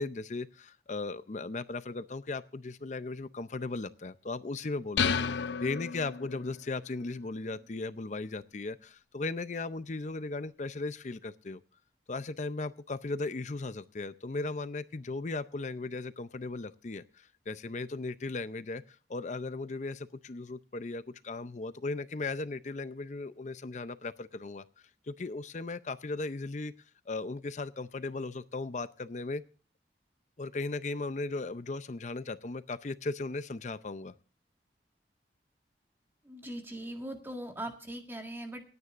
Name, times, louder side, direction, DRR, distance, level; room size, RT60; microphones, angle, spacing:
voice 1, 0.0-5.1 5.6-11.6 12.1-24.6 25.1-26.7 27.1-29.4 30.4-34.1, left 3 dB, 40° left, 13 dB, 0.5 m, -37 dB
sound 1, 5.0-6.6, left 6 dB, 85° left, 0.7 m, -31 dB
voice 2, 36.2-38.6, right 1 dB, 15° right, 4 dB, 1.7 m, -40 dB
27.0 x 9.5 x 2.5 m, 0.38 s
head